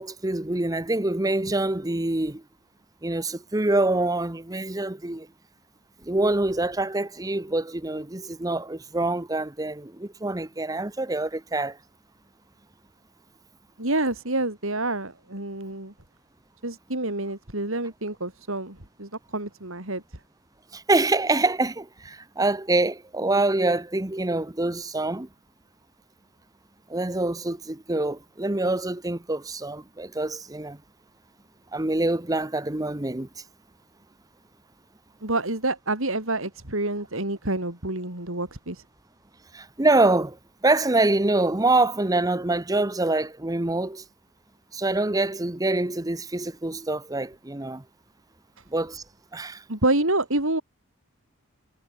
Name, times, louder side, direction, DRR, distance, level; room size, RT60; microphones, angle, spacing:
voice 1, 0.0-2.4 3.0-5.3 6.0-11.8 20.7-25.3 26.9-30.8 31.7-33.3 39.5-40.4 40.6-44.0 44.7-47.8 48.7-49.0 49.3-49.6, right 2 dB, 15° right, 0.9 m, -25 dB
voice 2, 13.8-15.9 16.6-20.2 35.2-38.8 49.7-50.6, right 2 dB, 65° right, 4.8 m, -28 dB
head